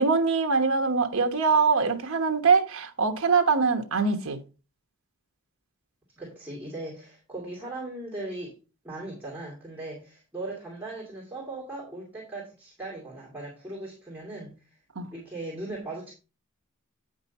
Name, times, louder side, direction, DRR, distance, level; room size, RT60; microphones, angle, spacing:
voice 1, 0.0-4.4 14.9-15.1, right 4 dB, 75° right, 1.2 m, -23 dB
voice 2, 6.2-8.6 8.8-14.8 15.1-16.1, right 2 dB, 10° right, 2.6 m, -38 dB
9.4 x 5.2 x 4.1 m
head